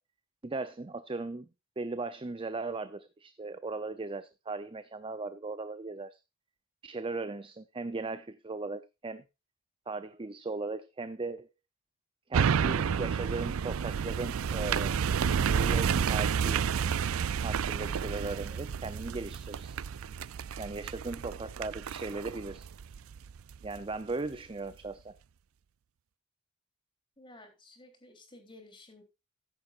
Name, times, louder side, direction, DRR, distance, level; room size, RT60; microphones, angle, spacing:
voice 1, 0.4-1.5 1.8-6.2 6.8-9.2 9.9-11.5 12.3-15.0 15.2-16.6 17.4-19.8 20.6-22.7 23.6-25.2, right 3 dB, 25° right, 0.6 m, -38 dB
sound 1, 12.3-23.8 24.2-24.3, right 7 dB, 80° right, 0.4 m, -30 dB
voice 2, 27.2-29.0, left 2 dB, 25° left, 3.4 m, -54 dB
14.0 x 10.5 x 2.5 m
head